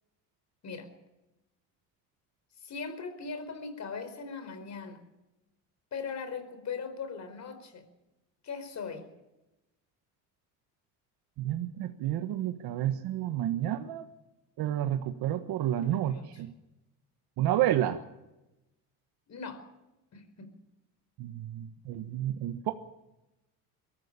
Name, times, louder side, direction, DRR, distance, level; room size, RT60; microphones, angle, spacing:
voice 1, 2.6-5.1 5.9-7.9 8.4-9.1 15.7-16.4 19.3-19.6 20.1-20.5, left 5 dB, 45° left, 9 dB, 4.8 m, -40 dB
voice 2, 11.4-14.1 14.6-16.5 17.4-18.0 21.2-22.7, right 12 dB, 70° right, 7 dB, 1.4 m, -30 dB
22.5 x 14.5 x 8.8 m, 0.96 s
cardioid pair, 105°, 39 cm